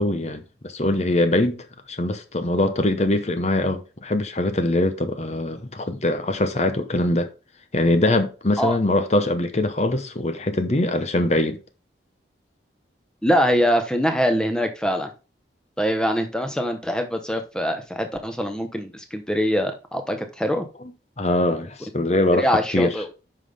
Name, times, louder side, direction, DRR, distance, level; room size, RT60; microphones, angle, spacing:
voice 1, 0.0-7.3 7.7-11.6 21.2-22.9, left 1 dB, 35° left, 0.8 m, -22 dB
voice 2, 13.2-15.1 15.8-20.7 22.3-23.1, equal, 5° left, 1.0 m, -23 dB
9.0 x 5.6 x 3.5 m
head